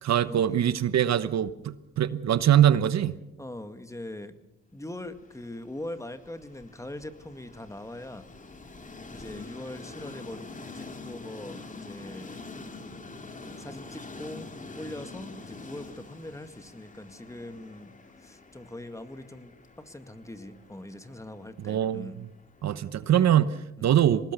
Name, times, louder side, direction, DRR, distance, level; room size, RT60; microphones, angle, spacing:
voice 1, 0.0-3.2 21.6-22.1 22.6-24.3, right 10 dB, 60° right, 14 dB, 1.0 m, -23 dB
voice 2, 3.4-4.4 4.7-8.3 9.1-12.6 13.6-22.2 23.8-23.9, left 1 dB, 10° left, 9 dB, 1.9 m, -42 dB
Train, 5.0-23.1, left 3 dB, 25° left, 2.4 m, -46 dB
24.5 x 19.5 x 6.8 m, 0.88 s
cardioid pair, 90°, 30 cm